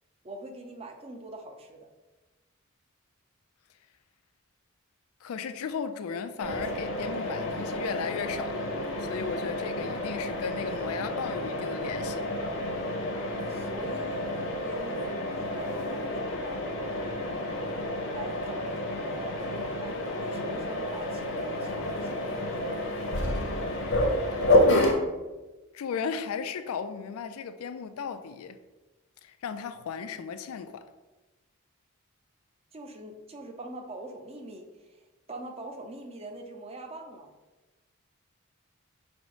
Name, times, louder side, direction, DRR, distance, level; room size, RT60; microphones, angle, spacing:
voice 1, 0.2-1.9 13.5-14.2 14.6-15.2 15.5-16.6 18.1-22.8 32.7-35.0 35.3-37.3, right 2 dB, 30° right, 0.5 m, -43 dB
voice 2, 5.2-8.7 9.0-12.3 24.3-24.5 25.7-28.6 29.2-30.9, left 6 dB, 80° left, 0.3 m, -36 dB
Mechanisms, 6.4-24.9, left 1 dB, 60° left, 0.8 m, -30 dB
5.2 x 2.0 x 4.6 m
head